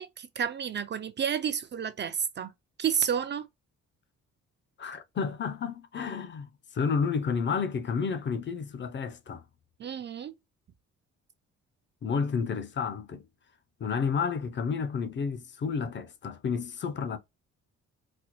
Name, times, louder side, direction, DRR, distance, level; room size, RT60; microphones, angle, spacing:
voice 1, 0.0-2.5 2.8-3.5 9.8-10.3, right 8 dB, 35° right, 0.4 m, -30 dB
voice 2, 4.8-9.4 12.0-13.2 13.8-17.2, left 5 dB, 40° left, 0.5 m, -31 dB
4.1 x 2.0 x 3.0 m
cardioid pair, 90°, 30 cm